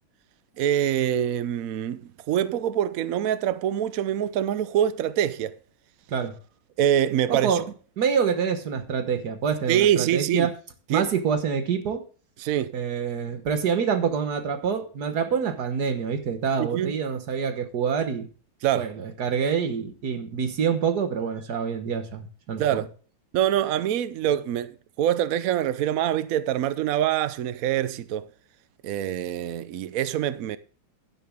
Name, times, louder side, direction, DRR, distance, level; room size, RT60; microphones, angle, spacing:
voice 1, 0.6-5.6 6.8-7.6 9.7-10.5 10.9-11.1 12.4-12.7 16.6-16.9 18.6-18.9 22.6-22.9 23.3-24.7 25.0-28.3 28.8-30.6, right 10 dB, 80° right, 0.7 m, -25 dB
voice 2, 7.3-7.6 8.0-10.5 10.9-12.0 12.7-18.3 18.7-22.8, right 6 dB, 55° right, 1.6 m, -26 dB
11.5 x 10.0 x 3.6 m
omnidirectional pair, 2.3 m